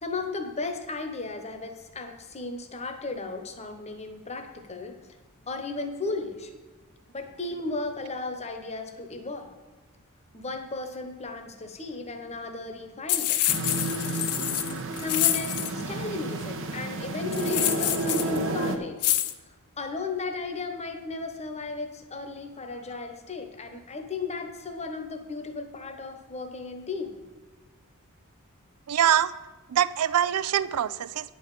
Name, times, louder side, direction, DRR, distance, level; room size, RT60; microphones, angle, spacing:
voice 1, 0.0-4.9 5.5-6.5 7.1-9.5 10.3-13.4 15.0-19.0 19.8-27.1, left 3 dB, 30° left, 6 dB, 1.1 m, -35 dB
sound 1, 13.1-15.7 17.3-18.4 19.0-19.3, left 13 dB, 90° left, 0.7 m, -27 dB
sound 2, 13.5-18.8, right 2 dB, 60° right, 1.1 m, -31 dB
voice 2, 28.9-29.3 29.7-31.3, right 10 dB, 75° right, 16 dB, 0.4 m, -24 dB
9.8 x 5.4 x 8.3 m, 1.2 s
head